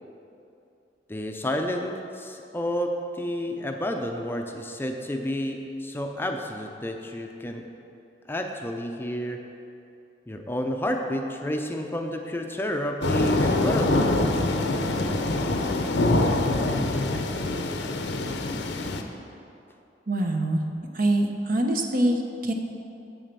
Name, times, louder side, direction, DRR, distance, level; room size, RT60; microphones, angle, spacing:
voice 1, 1.1-7.7 8.3-9.5 10.3-14.2, equal, 15° left, 3 dB, 0.5 m, -30 dB
sound 1, 13.0-19.0, left 2 dB, 80° left, 0.8 m, -24 dB
voice 2, 20.1-20.6 20.9-22.5, right 1 dB, 50° right, 4 dB, 0.9 m, -24 dB
7.9 x 7.3 x 6.7 m, 2.7 s
head